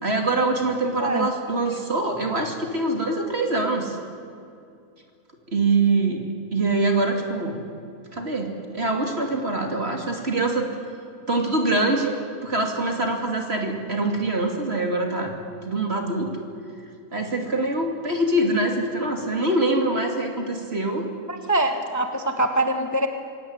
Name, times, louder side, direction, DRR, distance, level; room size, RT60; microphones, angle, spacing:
voice 1, 0.0-4.0 5.5-6.2 6.5-7.6 8.1-10.7 11.3-12.2 12.4-15.3 15.6-16.3 17.1-21.1, right 2 dB, 40° right, 3 dB, 3.0 m, -24 dB
voice 2, 21.3-23.1, right 1 dB, 10° left, 5 dB, 1.2 m, -23 dB
25.5 x 17.5 x 9.7 m, 2.5 s
omnidirectional pair, 1.6 m